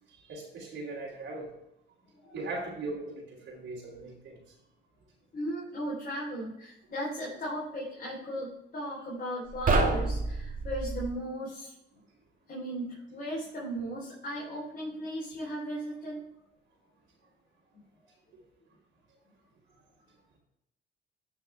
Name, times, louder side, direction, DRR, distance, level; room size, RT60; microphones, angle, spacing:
voice 1, 0.3-1.5 2.3-4.4, right 2 dB, 75° right, -6 dB, 3.1 m, -39 dB
voice 2, 5.3-11.7 12.5-16.2 17.7-17.8, equal, 50° left, -6 dB, 4.0 m, -36 dB
sound 1, 9.5-11.1, right 3 dB, 45° right, 2.1 m, -28 dB
13.5 x 6.1 x 3.5 m, 0.85 s
cardioid pair, 90°, 20 cm